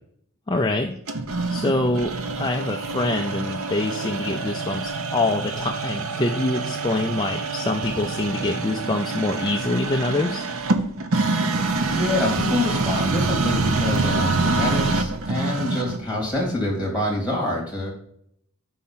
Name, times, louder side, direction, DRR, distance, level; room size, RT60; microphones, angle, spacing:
voice 1, 0.5-1.0 1.5-10.4, left 2 dB, 20° left, 3 dB, 0.4 m, -25 dB
sound 1, 1.1-16.1, right 3 dB, 70° right, 0.7 m, -26 dB
voice 2, 11.7-17.9, left 1 dB, 5° right, -4 dB, 2.7 m, -26 dB
5.6 x 4.2 x 5.6 m, 0.68 s
head